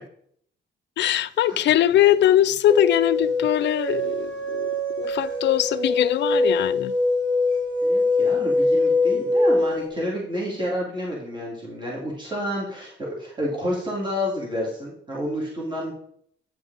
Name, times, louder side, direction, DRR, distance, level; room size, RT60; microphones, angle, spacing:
voice 1, 1.0-4.7 5.0-6.9, left 12 dB, 60° left, 0.5 m, -21 dB
sound 1, 2.7-9.9, left 2 dB, 40° right, 1.8 m, -23 dB
voice 2, 7.8-15.9, equal, 20° right, 2.5 m, -29 dB
9.0 x 4.9 x 4.0 m
cardioid pair, 115°, 21 cm